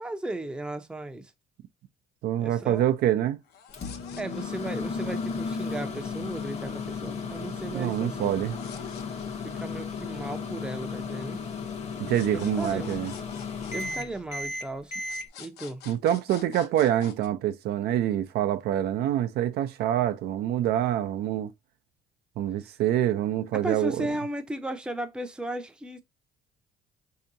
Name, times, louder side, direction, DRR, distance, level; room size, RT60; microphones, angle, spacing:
voice 1, 0.0-1.3 2.4-2.8 4.2-8.4 9.4-11.4 12.3-13.0 13.7-15.0 15.4-15.8 23.6-26.0, right 1 dB, 5° right, 0.5 m, -35 dB
voice 2, 2.2-3.4 7.7-8.5 12.0-13.1 15.9-21.5 22.4-24.1, right 11 dB, 70° right, 0.5 m, -26 dB
sound 1, 3.4-4.9 8.3-9.9 12.1-14.6 15.0-17.3, left 7 dB, 75° left, 0.7 m, -48 dB
Microwave oven, 3.7-15.3, left 4 dB, 40° left, 0.9 m, -34 dB
4.4 x 2.8 x 2.5 m
cardioid pair, 110°, 17 cm